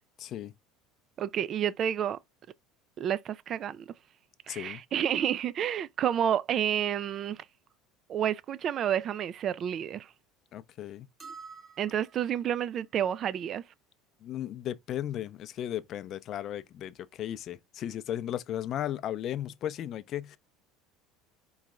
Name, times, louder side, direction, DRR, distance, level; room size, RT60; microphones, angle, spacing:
voice 1, 0.2-0.5 4.5-4.8 10.5-11.1 14.2-20.4, left 11 dB, 40° left, 0.5 m, -35 dB
voice 2, 1.2-2.2 3.0-3.9 4.5-7.5 8.1-10.1 11.8-13.6, right 9 dB, 35° right, 0.3 m, -30 dB
sound 1, 11.2-12.5, right 5 dB, 20° right, 0.8 m, -48 dB
4.4 x 3.1 x 3.7 m
cardioid pair, 140°, 0 cm